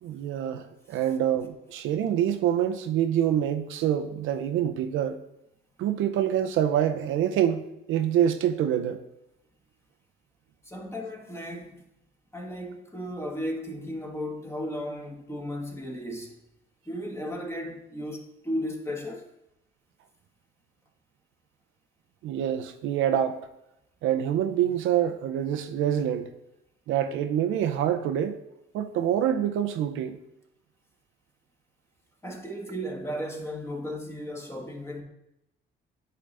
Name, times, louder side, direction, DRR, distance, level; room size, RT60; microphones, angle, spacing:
voice 1, 0.0-5.2 5.8-9.0 22.2-23.4 24.0-26.3 26.9-28.4 28.7-30.2, right 10 dB, 90° right, 0.6 m, -26 dB
voice 2, 10.6-11.8 12.3-16.4 16.9-19.3 32.2-35.0, equal, 15° left, 1.4 m, -35 dB
10.0 x 3.9 x 3.3 m
cardioid pair, 90°, 20 cm